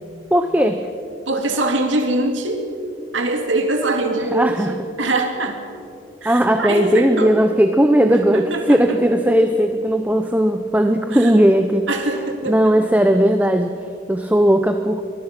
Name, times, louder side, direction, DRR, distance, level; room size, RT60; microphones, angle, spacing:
voice 1, 0.3-0.9 4.3-4.7 6.2-11.9 12.5-13.7 14.1-15.1, equal, 10° right, 7 dB, 0.8 m, -17 dB
voice 2, 1.3-2.6 3.1-5.6 6.2-7.4 8.1-9.0 11.1-11.4 11.9-12.8, right 2 dB, 90° right, 4 dB, 2.4 m, -23 dB
24.5 x 19.5 x 5.9 m, 2.5 s
head